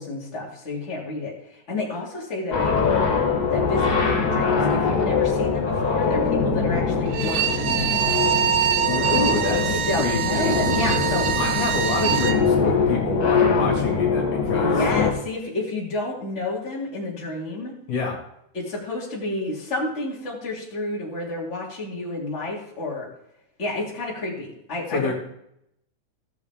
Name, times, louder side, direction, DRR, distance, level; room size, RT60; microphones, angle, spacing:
voice 1, 0.0-3.0 3.5-8.2 9.7-11.4 11.7-12.2 14.8-17.7 18.5-23.1 23.6-25.1, left 2 dB, 20° left, -5 dB, 3.1 m, -30 dB
sound 1, 2.5-15.1, left 5 dB, 45° left, 1.3 m, -23 dB
Bowed string instrument, 7.1-12.4, right 10 dB, 80° right, 2.2 m, -24 dB
voice 2, 8.9-10.6 11.4-14.8 17.9-18.2 24.9-25.1, left 3 dB, 70° left, -2 dB, 3.6 m, -27 dB
16.5 x 7.1 x 3.6 m, 0.77 s
omnidirectional pair, 3.7 m